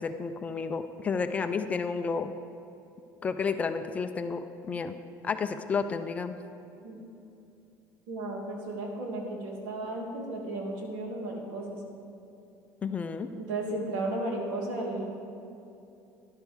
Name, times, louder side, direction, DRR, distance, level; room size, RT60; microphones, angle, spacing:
voice 1, 0.0-2.3 3.2-4.9 5.2-6.3 12.8-13.3, left 5 dB, 20° left, 8 dB, 0.3 m, -31 dB
voice 2, 8.1-11.8 13.3-15.0, right 2 dB, 80° right, -1 dB, 2.4 m, -34 dB
12.5 x 11.5 x 3.6 m, 2.8 s
cardioid pair, 180°, 7 cm